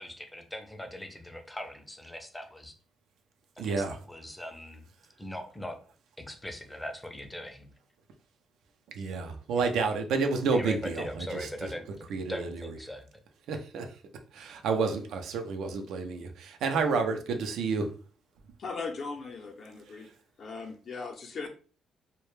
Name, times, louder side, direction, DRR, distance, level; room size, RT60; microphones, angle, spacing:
voice 1, 0.0-2.7 3.6-4.9 5.2-5.7 6.2-7.7 9.1-9.3 10.5-13.1, left 1 dB, 10° left, 6 dB, 0.5 m, -40 dB
voice 2, 3.6-4.0 8.9-12.8 13.5-13.9 14.3-17.9, right 4 dB, 80° right, 5 dB, 0.4 m, -30 dB
voice 3, 18.6-20.1 20.4-21.5, left 4 dB, 55° left, 4 dB, 0.5 m, -38 dB
2.1 x 2.0 x 3.0 m, 0.39 s
cardioid pair, 90°, 0 cm